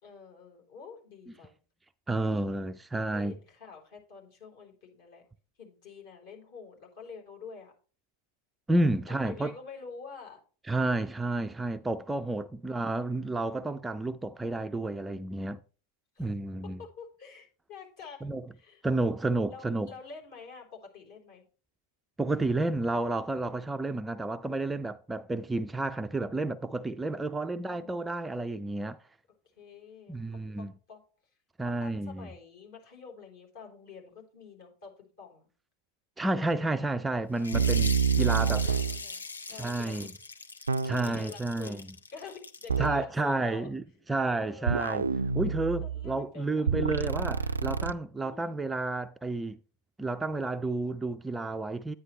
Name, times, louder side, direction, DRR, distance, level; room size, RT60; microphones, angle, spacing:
voice 1, 0.0-1.5 2.2-2.5 3.1-5.2 5.6-7.7 9.1-10.4 16.1-16.3 16.6-18.8 19.5-21.5 27.0-28.1 29.6-31.0 31.6-35.5 37.4-37.9 38.2-40.1 41.0-41.8 42.1-43.7 44.4-44.8 45.8-46.7 48.2-48.5, left 5 dB, 50° left, 3.9 m, -48 dB
voice 2, 2.1-3.3 8.7-9.5 10.7-15.6 16.2-16.8 18.2-18.4 18.8-19.9 22.2-29.0 30.1-30.7 31.6-32.3 36.2-38.7 39.6-40.1 40.8-41.8 42.8-43.8 44.1-45.0 45.3-49.6 50.0-51.9, right 2 dB, 10° right, 0.4 m, -31 dB
sound 1, 37.4-42.9, left 4 dB, 75° left, 0.7 m, -41 dB
sound 2, 37.5-39.0 40.7-41.2 42.7-43.0 44.7-46.2 46.7-47.9, right 6 dB, 75° right, 0.3 m, -27 dB
9.6 x 9.4 x 3.1 m
figure-of-eight pair, 90°, 0 cm